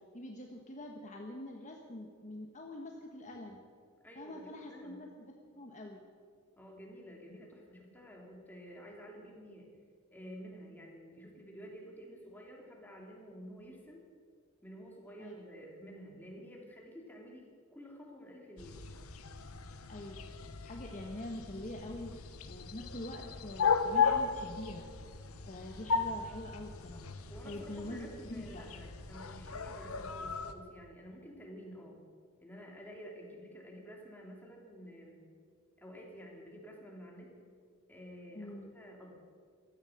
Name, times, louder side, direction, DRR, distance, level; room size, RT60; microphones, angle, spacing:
voice 1, 0.1-3.6 4.1-5.1 5.5-6.1 15.2-15.3 19.9-20.2 20.6-24.9 25.5-27.1 27.4-28.6 38.3-38.7, left 1 dB, 35° left, 1 dB, 1.2 m, -45 dB
voice 2, 4.0-5.0 6.6-9.7 10.1-14.1 14.6-18.8 27.3-32.0 32.4-35.3 35.8-37.3 37.9-39.2, equal, 10° left, -1 dB, 2.8 m, -50 dB
sound 1, 18.6-30.5, left 6 dB, 85° left, 1.0 m, -36 dB
15.5 x 13.0 x 6.5 m, 2.1 s
head